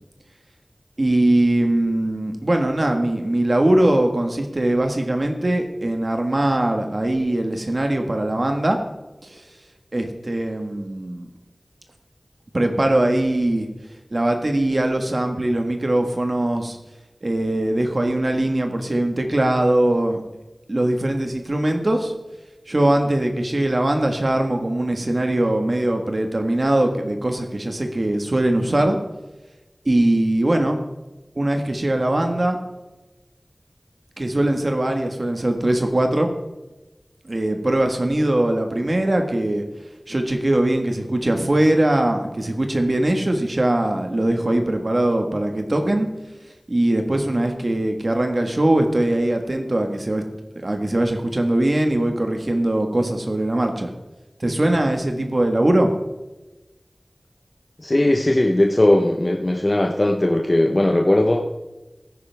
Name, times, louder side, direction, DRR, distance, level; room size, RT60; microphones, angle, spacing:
voice 1, 1.0-8.8 9.2-9.4 9.9-11.3 12.5-13.7 14.1-16.8 17.2-20.2 20.7-22.1 22.7-29.0 29.8-30.8 31.3-32.6 34.2-36.3 37.2-39.6 40.1-46.1 46.7-50.2 50.5-53.9 54.4-55.9, right 1 dB, 60° right, 4 dB, 1.6 m, -21 dB
voice 2, 57.8-61.5, left 1 dB, 45° left, 1 dB, 1.1 m, -18 dB
16.5 x 9.7 x 3.5 m, 1.1 s
wide cardioid pair, 40°, 0 cm